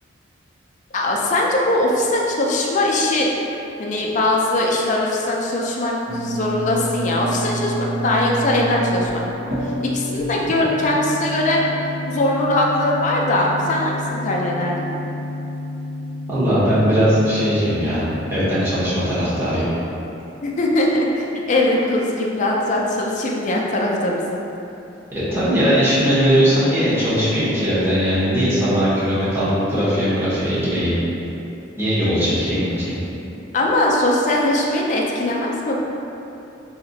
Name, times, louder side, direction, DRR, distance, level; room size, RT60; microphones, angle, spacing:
voice 1, 0.9-3.3 3.8-7.7 8.0-9.5 9.9-11.6 12.1-14.8 20.4-24.4 33.5-35.7, left 1 dB, 40° left, -2 dB, 0.4 m, -21 dB
sound 1, 6.1-19.1, equal, 60° right, 0.9 m, -29 dB
voice 2, 16.3-19.7 25.1-31.0 31.8-32.9, equal, 10° right, -12 dB, 0.9 m, -19 dB
2.8 x 2.5 x 3.9 m, 2.9 s
head